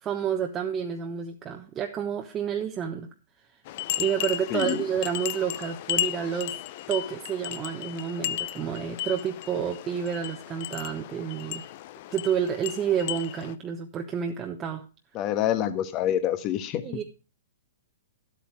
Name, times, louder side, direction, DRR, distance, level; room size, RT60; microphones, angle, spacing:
voice 1, 0.0-3.1 4.0-6.6 6.9-11.6 12.1-14.9 16.8-17.0, right 8 dB, 25° right, 3 dB, 1.2 m, -29 dB
sound 1, 3.7-13.5, left 14 dB, 50° left, 0.7 m, -34 dB
voice 2, 4.5-4.8 15.1-16.8, left 11 dB, 35° left, 10 dB, 1.5 m, -26 dB
11.5 x 8.2 x 4.6 m, 0.32 s
hypercardioid pair, 120°, 0 cm